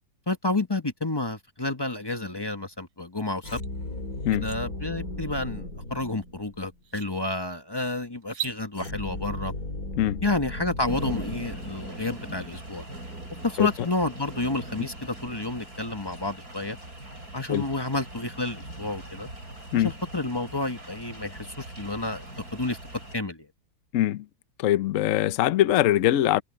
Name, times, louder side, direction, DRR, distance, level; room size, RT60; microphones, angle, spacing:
voice 1, 0.3-3.6 4.3-9.5 10.2-12.9 13.4-16.8 17.3-19.3 19.8-22.3 22.5-22.8 23.1-23.5, left 2 dB, 15° left, 0.9 m, -30 dB
sound 1, 3.4-6.7 8.7-12.0, left 2 dB, 45° left, 4.5 m, -36 dB
sound 2, 3.6-3.7 4.1-4.6 6.2-6.3 6.8-7.1 8.2-8.6, right 10 dB, 85° right, 0.6 m, -36 dB
sound 3, 10.9-23.2, right 1 dB, 50° right, 7.0 m, -41 dB
voice 2, 23.9-24.3 24.6-26.4, left 13 dB, 70° left, 0.7 m, -22 dB
omnidirectional pair, 2.1 m